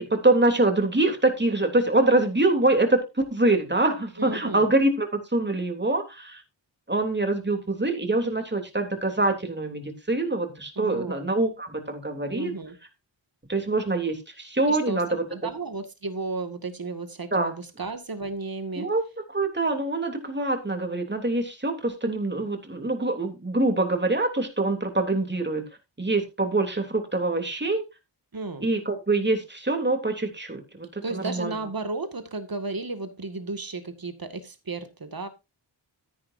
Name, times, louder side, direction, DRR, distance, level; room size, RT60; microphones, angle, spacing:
voice 1, 0.0-6.4 6.9-12.5 13.5-15.3 17.3-17.5 18.8-19.0 19.3-25.6 26.0-27.8 28.6-31.6, right 2 dB, 25° right, 3.2 m, -25 dB
voice 2, 4.2-4.7 10.8-11.2 12.3-12.8 14.7-18.9 28.3-28.7 31.0-35.3, right 3 dB, 50° right, 2.1 m, -34 dB
13.0 x 10.5 x 2.7 m
wide cardioid pair, 65°, 45 cm